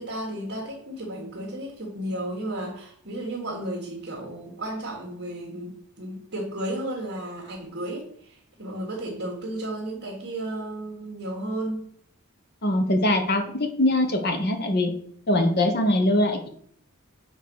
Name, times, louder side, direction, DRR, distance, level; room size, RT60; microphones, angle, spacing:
voice 1, 0.0-11.9, right 1 dB, 50° right, -4 dB, 1.7 m, -33 dB
voice 2, 12.6-14.9 15.3-16.5, left 1 dB, 45° left, 5 dB, 1.1 m, -22 dB
7.0 x 4.0 x 6.3 m, 0.63 s
head